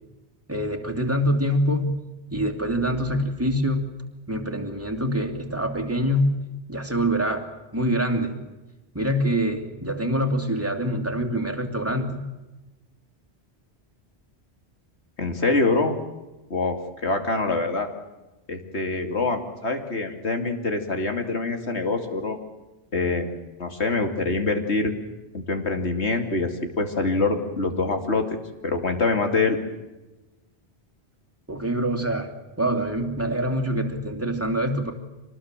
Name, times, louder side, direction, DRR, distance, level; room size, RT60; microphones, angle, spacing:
voice 1, 0.5-2.0 2.3-3.9 4.3-6.3 6.7-8.4 8.9-12.3 31.5-34.9, equal, 10° right, 3 dB, 2.6 m, -25 dB
voice 2, 15.2-15.9 16.5-17.9 18.5-22.4 22.9-23.3 23.6-24.9 25.3-28.3 28.6-29.6, left 3 dB, 75° left, 5 dB, 2.9 m, -25 dB
26.0 x 20.0 x 7.5 m, 1.1 s
omnidirectional pair, 1.1 m